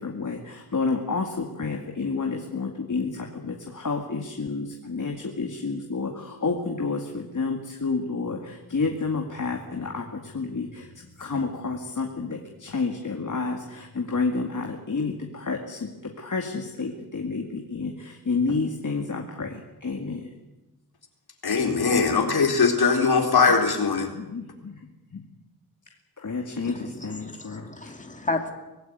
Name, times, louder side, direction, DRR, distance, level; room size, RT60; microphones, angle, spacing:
voice 1, 0.0-20.3 23.9-24.8 25.1-25.2 26.2-27.9, left 4 dB, 55° left, 2.3 m, -30 dB
voice 2, 21.4-24.1, left 5 dB, 80° left, 4.1 m, -21 dB
voice 3, 26.6-28.5, left 2 dB, 20° left, 2.5 m, -32 dB
24.0 x 18.0 x 9.5 m
wide cardioid pair, 125°, 37 cm